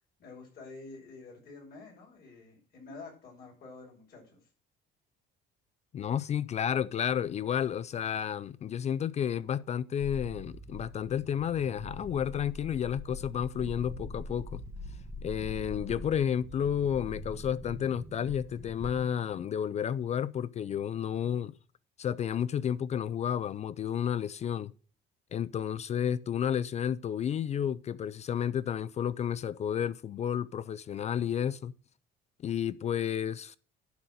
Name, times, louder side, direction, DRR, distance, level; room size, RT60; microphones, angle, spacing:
voice 1, 0.2-4.4, left 3 dB, 50° left, 5.6 m, -48 dB
voice 2, 5.9-14.6 15.2-21.5 22.0-24.7 25.3-31.7 32.4-33.6, left 9 dB, 35° left, 0.4 m, -31 dB
sound 1, 10.0-19.4, left 1 dB, 15° right, 1.8 m, -43 dB
11.0 x 4.2 x 7.9 m
cardioid pair, 150°, 20 cm